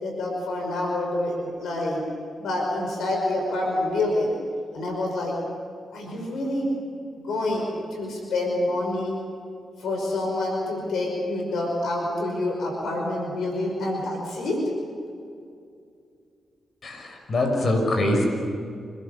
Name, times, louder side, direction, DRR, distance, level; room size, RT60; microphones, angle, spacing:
voice 1, 0.0-2.0 2.4-4.3 4.7-5.3 5.9-6.7 7.2-9.1 9.8-14.6, left 2 dB, 80° left, 0 dB, 5.4 m, -27 dB
voice 2, 16.8-18.2, left 1 dB, 55° left, 3 dB, 6.0 m, -23 dB
28.0 x 20.0 x 7.1 m, 2.4 s
supercardioid pair, 50°, 0 cm